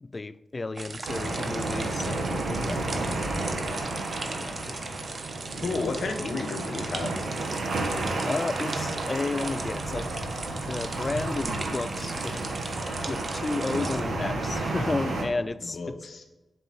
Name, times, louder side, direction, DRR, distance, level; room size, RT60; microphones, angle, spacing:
voice 1, 0.0-3.9 4.3-4.8 8.2-10.1 10.5-12.4 13.1-16.0, left 3 dB, 35° left, 15 dB, 0.4 m, -33 dB
sound 1, 0.8-14.0, right 3 dB, 45° right, 1.0 m, -39 dB
sound 2, 1.0-15.2, right 2 dB, 80° right, 1.7 m, -31 dB
voice 2, 5.6-7.3 15.6-16.2, left 3 dB, 70° left, 6 dB, 1.1 m, -32 dB
7.8 x 5.4 x 6.8 m, 1.1 s
cardioid pair, 75°, 0 cm